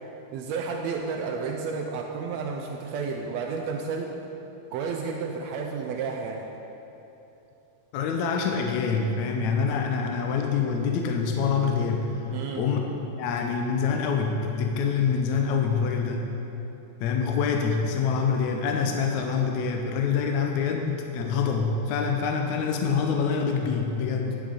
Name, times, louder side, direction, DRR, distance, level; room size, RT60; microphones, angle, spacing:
voice 1, 0.3-4.1 4.7-6.4 12.3-12.6, right 5 dB, 85° right, 2 dB, 1.5 m, -31 dB
voice 2, 7.9-12.2 12.6-12.8 13.2-16.3 17.0-24.4, left 5 dB, 75° left, 3 dB, 1.9 m, -26 dB
11.0 x 10.0 x 4.0 m, 3.0 s
omnidirectional pair, 3.8 m